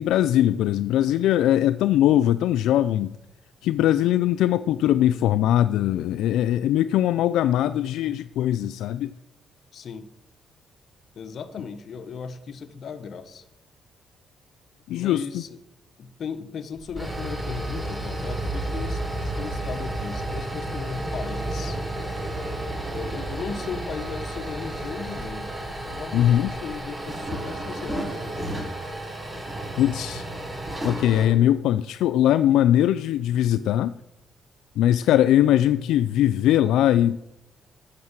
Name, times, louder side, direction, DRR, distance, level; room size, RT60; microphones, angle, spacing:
voice 1, 0.0-3.2 3.6-9.1 14.9-15.4 26.1-26.5 29.8-30.3 30.8-33.9 34.8-37.2, left 12 dB, 85° left, 0.3 m, -21 dB
voice 2, 9.7-10.1 11.1-13.4 14.9-15.6 16.0-21.8 22.9-28.5, left 6 dB, 60° left, 1.2 m, -37 dB
sound 1, 16.8-31.3, right 1 dB, 20° right, 4.8 m, -31 dB
14.5 x 6.4 x 7.4 m
cardioid pair, 90°, 0 cm